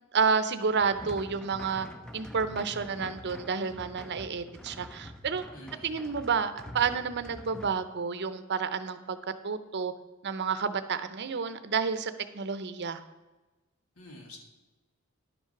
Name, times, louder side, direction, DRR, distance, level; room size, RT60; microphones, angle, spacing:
voice 1, 0.1-1.9 2.1-5.4 5.8-9.2 9.4-9.9 10.2-13.0, right 5 dB, 55° right, 11 dB, 0.7 m, -30 dB
sound 1, 0.7-7.7, equal, 5° left, 0.5 m, -46 dB
voice 2, 5.5-6.0 14.0-14.4, left 1 dB, 80° left, 2 dB, 1.9 m, -48 dB
11.0 x 5.8 x 5.9 m, 1.1 s
head